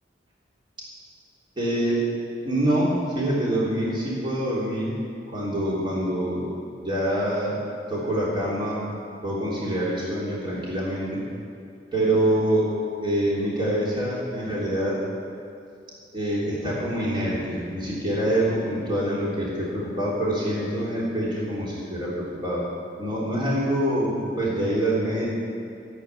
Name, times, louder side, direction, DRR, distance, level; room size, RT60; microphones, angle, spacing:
voice 1, 1.5-2.0 2.4-5.0 5.3-6.5 6.8-7.6 7.9-8.8 9.2-11.2 11.9-12.7 13.0-15.0 16.1-22.7 23.0-25.3, right 1 dB, 25° right, -6 dB, 3.4 m, -25 dB
14.5 x 8.0 x 9.7 m, 2.5 s
head